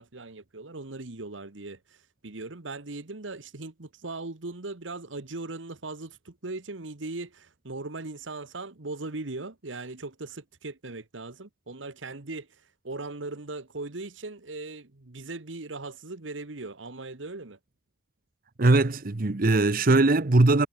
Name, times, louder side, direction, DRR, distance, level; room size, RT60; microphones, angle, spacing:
voice 1, 0.0-17.6, right 3 dB, 80° right, 1.5 m, -39 dB
voice 2, 18.6-20.7, right 2 dB, 50° right, 0.9 m, -20 dB
head